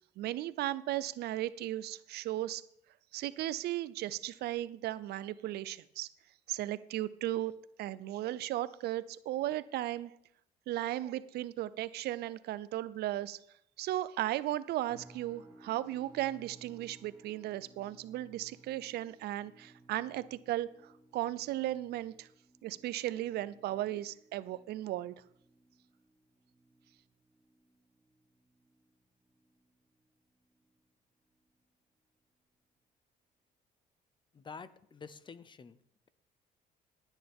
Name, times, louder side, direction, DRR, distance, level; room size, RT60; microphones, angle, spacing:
voice 1, 0.2-2.6 3.1-6.1 6.5-10.2 10.7-13.4 13.8-22.3 22.6-25.1, right 14 dB, 70° right, 16 dB, 0.6 m, -36 dB
sound 1, 14.9-30.1 30.4-30.8 31.3-31.5, right 2 dB, 20° right, 4.5 m, -61 dB
voice 2, 34.3-35.8, left 5 dB, 30° left, 15 dB, 0.7 m, -48 dB
18.0 x 9.2 x 3.6 m, 0.73 s
cardioid pair, 110°, 17 cm